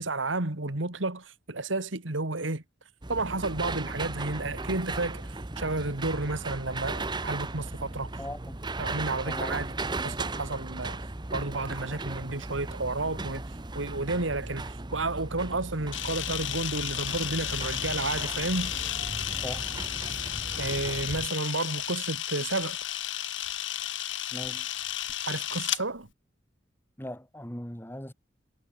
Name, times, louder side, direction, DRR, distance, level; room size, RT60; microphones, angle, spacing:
voice 1, 0.0-2.6 3.1-8.1 8.8-9.7 10.0-11.0 11.3-13.4 13.7-18.7 20.6-22.8 25.3-26.1, right 2 dB, 90° right, 2.4 m, -31 dB
sound 1, 3.0-21.3, right 2 dB, 25° right, 1.0 m, -37 dB
voice 2, 8.2-8.6 9.2-9.6 19.4-19.8 24.3-24.7 27.0-28.1, left 1 dB, 10° left, 2.6 m, -39 dB
Camera, 15.9-25.8, left 12 dB, 85° left, 2.9 m, -33 dB
head